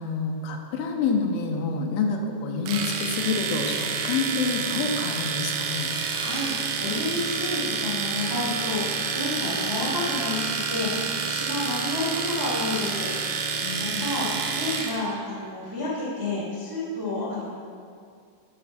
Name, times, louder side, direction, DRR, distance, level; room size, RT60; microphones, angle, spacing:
voice 1, 0.0-5.9 13.6-14.1, left 4 dB, 80° left, 2 dB, 2.6 m, -28 dB
Domestic sounds home sounds, 2.7-15.0, right 5 dB, 90° right, 2.6 m, -29 dB
voice 2, 6.1-6.5 6.8-13.1 13.4-17.5, left 2 dB, 20° right, -7 dB, 0.6 m, -30 dB
11.0 x 4.3 x 5.8 m, 2.2 s
omnidirectional pair, 4.4 m